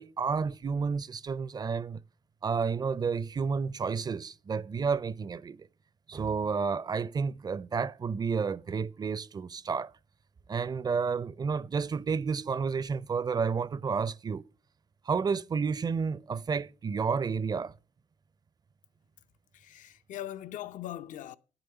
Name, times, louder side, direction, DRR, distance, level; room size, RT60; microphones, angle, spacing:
voice 1, 0.0-2.0 2.4-5.7 6.1-9.9 10.5-14.4 15.1-17.7, right 5 dB, 30° right, 0.4 m, -31 dB
voice 2, 19.5-21.4, left 12 dB, 75° left, 0.6 m, -40 dB
9.8 x 8.0 x 6.7 m
cardioid pair, 90°, 13 cm